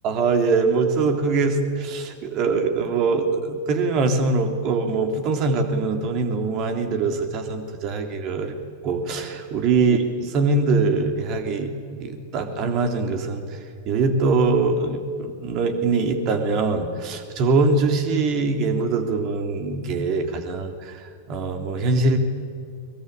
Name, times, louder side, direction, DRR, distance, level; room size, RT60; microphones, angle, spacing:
voice 1, 0.0-8.5 8.8-11.7 12.0-13.6 13.9-21.0 21.3-22.2, right 3 dB, 40° right, 6 dB, 3.4 m, -23 dB
22.5 x 22.5 x 8.9 m, 2.3 s
figure-of-eight pair, 90°, 0 cm